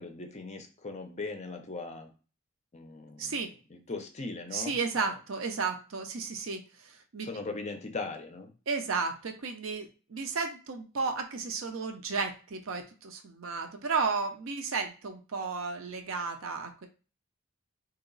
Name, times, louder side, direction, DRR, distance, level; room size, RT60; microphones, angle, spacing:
voice 1, 0.0-2.1 2.7-3.4 3.7-4.8 7.2-8.5, left 3 dB, 30° left, 5 dB, 0.6 m, -39 dB
voice 2, 3.2-3.5 3.9-4.0 4.5-7.3 8.7-16.9, right 4 dB, 70° right, 6 dB, 0.6 m, -33 dB
2.9 x 2.9 x 3.9 m, 0.35 s
head